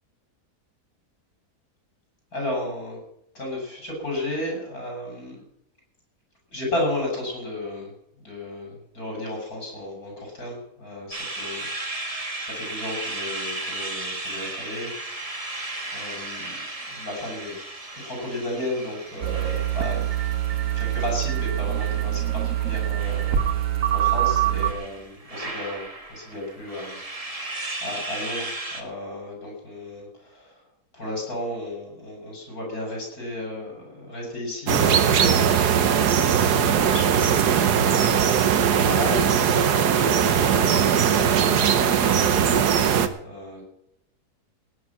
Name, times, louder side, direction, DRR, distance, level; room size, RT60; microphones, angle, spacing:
voice 1, 2.3-3.0 3.3-5.4 6.5-7.9 8.2-12.1 12.4-15.4 15.9-17.6 17.9-20.0 20.8-23.6 23.9-27.0 27.3-30.6 30.9-35.8 36.0-41.4 41.7-42.9 43.2-43.6, left 1 dB, 60° left, -1 dB, 7.4 m, -34 dB
sound 1, 11.1-28.8, right 2 dB, 20° right, 1.6 m, -36 dB
sound 2, 19.2-24.7, right 12 dB, 55° right, 1.5 m, -24 dB
sound 3, 34.7-43.1, right 8 dB, 80° right, 1.6 m, -20 dB
17.5 x 9.9 x 5.9 m, 0.77 s
omnidirectional pair, 1.7 m